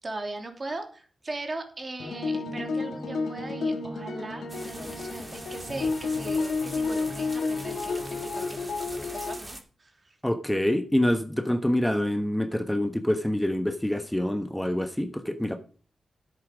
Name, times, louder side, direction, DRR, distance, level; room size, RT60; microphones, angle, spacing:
voice 1, 0.0-10.2, right 2 dB, 45° right, 3.0 m, -39 dB
sound 1, 2.0-9.4, left 3 dB, 85° left, 1.7 m, -31 dB
sound 2, 4.5-9.6, right 1 dB, 20° right, 2.7 m, -43 dB
voice 2, 10.2-15.6, left 1 dB, 10° left, 1.2 m, -26 dB
10.0 x 8.2 x 5.2 m
cardioid pair, 45°, 0 cm